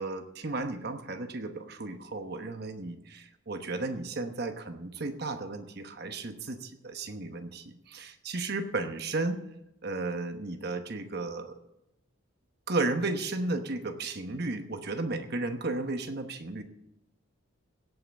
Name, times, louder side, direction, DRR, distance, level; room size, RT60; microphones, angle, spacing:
voice 1, 0.0-9.4 9.8-11.6 12.7-16.6, right 2 dB, 50° right, 7 dB, 1.0 m, -34 dB
17.0 x 5.8 x 7.9 m, 0.86 s
head